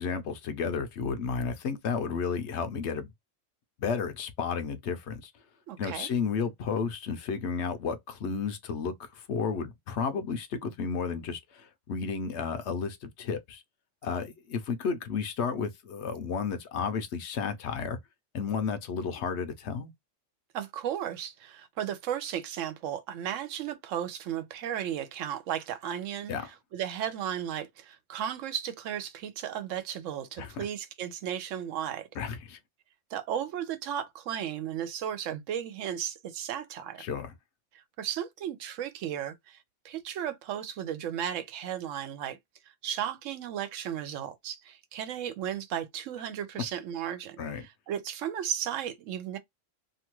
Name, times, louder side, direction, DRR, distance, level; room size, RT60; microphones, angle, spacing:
voice 1, 0.0-3.1 3.8-5.3 5.8-13.6 14.0-18.0 18.3-19.9 26.3-26.5 30.4-30.7 32.2-32.6 37.0-37.3 47.4-47.7, left 6 dB, 65° left, 0.9 m, -32 dB
voice 2, 5.7-6.1 20.5-26.3 26.7-32.1 33.1-37.0 38.0-39.6 39.8-42.4 42.8-49.4, right 10 dB, 85° right, 1.0 m, -35 dB
2.8 x 2.3 x 2.9 m
omnidirectional pair, 1.3 m